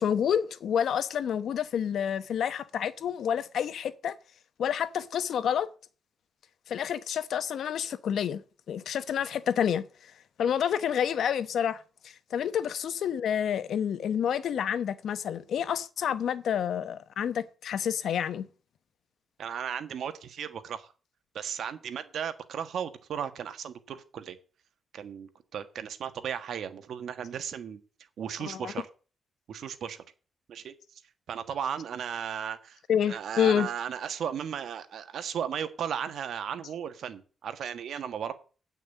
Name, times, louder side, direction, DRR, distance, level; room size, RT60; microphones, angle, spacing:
voice 1, 0.0-4.1 4.6-5.7 6.7-8.4 8.7-10.1 10.4-18.5 28.5-28.7 32.9-33.7, left 8 dB, 70° left, 0.9 m, -29 dB
voice 2, 19.4-20.9 21.3-24.4 24.9-27.8 28.2-28.8 29.5-30.0 30.5-30.7 31.3-32.8 33.1-38.3, right 8 dB, 70° right, 1.4 m, -35 dB
8.9 x 6.1 x 8.2 m
cardioid pair, 105°, 0 cm